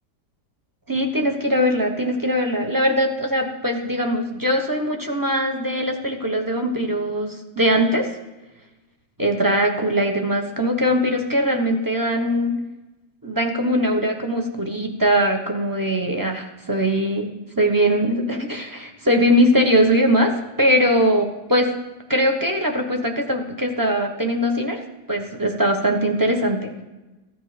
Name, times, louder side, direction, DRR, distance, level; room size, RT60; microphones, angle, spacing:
voice 1, 0.9-8.1 9.2-12.5 13.2-21.7 22.1-24.8 25.1-26.7, equal, 15° right, 3 dB, 1.0 m, -21 dB
15.5 x 10.5 x 5.1 m, 1.1 s
omnidirectional pair, 1.9 m